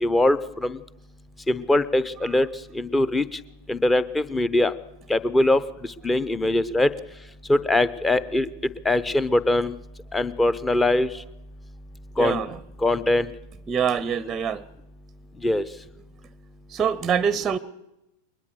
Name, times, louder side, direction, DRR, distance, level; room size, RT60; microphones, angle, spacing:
voice 1, 0.0-0.8 1.5-2.5 2.7-3.2 3.7-4.7 5.1-5.6 6.0-6.9 7.5-8.5 8.8-9.7 10.1-11.1 12.2-12.4 12.8-13.3 15.4-15.6, left 1 dB, 10° left, 17 dB, 0.8 m, -21 dB
voice 2, 12.2-12.6 13.7-14.6 16.7-17.6, right 7 dB, 20° right, 20 dB, 0.7 m, -24 dB
22.0 x 20.5 x 6.5 m, 0.90 s
figure-of-eight pair, 90°, 0 cm